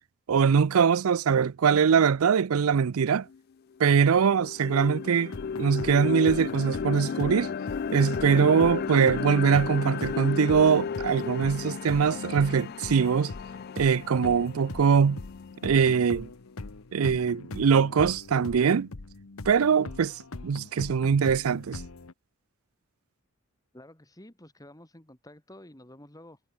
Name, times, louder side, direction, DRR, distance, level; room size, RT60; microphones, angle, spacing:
voice 1, 0.3-3.3 3.8-7.5 7.9-13.3 13.8-15.2 15.6-16.3 16.9-18.9 19.5-21.8, right 6 dB, 85° right, 0.5 m, -22 dB
sound 1, 3.3-3.4 3.8-15.9, left 6 dB, 45° left, 0.3 m, -34 dB
sound 2, 5.3-22.1, left 3 dB, 80° left, 1.1 m, -42 dB
voice 2, 23.7-26.4, left 1 dB, 15° left, 3.1 m, -50 dB
head